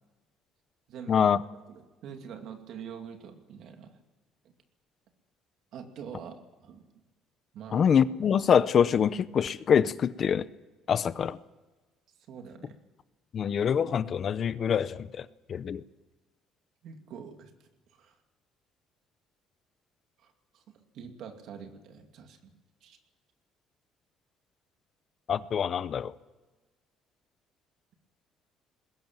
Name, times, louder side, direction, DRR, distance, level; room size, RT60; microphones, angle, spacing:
voice 1, 0.9-1.2 1.7-4.0 5.7-6.3 6.6-6.9 7.5-7.8 12.3-12.7 16.8-18.2 20.2-20.6 20.9-22.5 22.8-23.0, right 7 dB, 55° right, 2.5 m, -45 dB
voice 2, 7.7-10.4 10.9-11.4 13.3-15.8 25.3-26.1, left 7 dB, 35° left, 0.7 m, -25 dB
21.0 x 16.5 x 9.0 m
cardioid pair, 180°, 0 cm